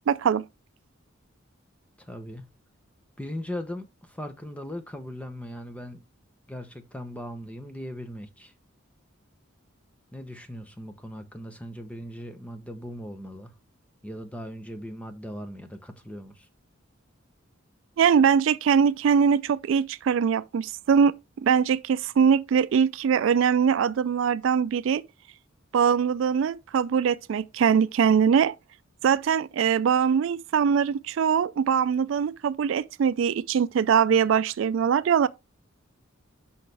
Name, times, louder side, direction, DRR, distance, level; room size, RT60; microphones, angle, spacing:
voice 1, 0.1-0.4 18.0-21.1 21.4-25.0 25.7-28.5 29.0-35.3, right 7 dB, 65° right, 0.3 m, -22 dB
voice 2, 2.0-2.5 3.2-6.0 6.5-8.5 10.1-13.5 14.0-16.5, equal, 5° left, 0.8 m, -39 dB
6.2 x 5.6 x 3.3 m
head